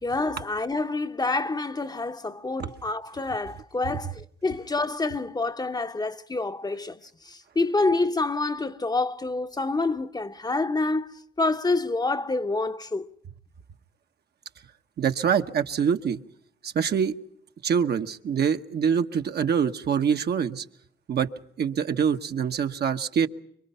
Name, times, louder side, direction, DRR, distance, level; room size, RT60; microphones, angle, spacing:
voice 1, 0.0-7.0 7.2-13.1, left 3 dB, 20° left, 0.9 m, -27 dB
voice 2, 15.0-16.2 16.6-17.1 17.6-20.6 21.1-21.3 21.6-23.3, right 7 dB, 55° right, 1.2 m, -25 dB
25.5 x 23.5 x 5.6 m
cardioid pair, 90°, 20 cm